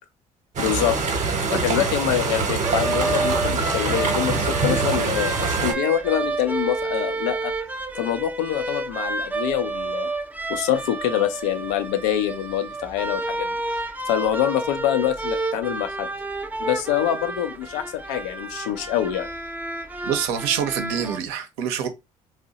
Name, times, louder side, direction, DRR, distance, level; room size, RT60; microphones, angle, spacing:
voice 1, 0.6-1.0 1.5-7.5 7.9-10.1 10.5-13.5 14.1-16.1 16.6-19.3, left 11 dB, 75° left, 0.5 m, -25 dB
sound 1, 0.6-5.7, right 4 dB, 40° right, 0.8 m, -24 dB
voice 2, 1.5-1.8 20.1-21.9, right 8 dB, 75° right, 0.6 m, -26 dB
sound 2, 2.6-21.2, right 3 dB, 10° right, 0.5 m, -30 dB
2.7 x 2.0 x 3.8 m
hypercardioid pair, 50°, 19 cm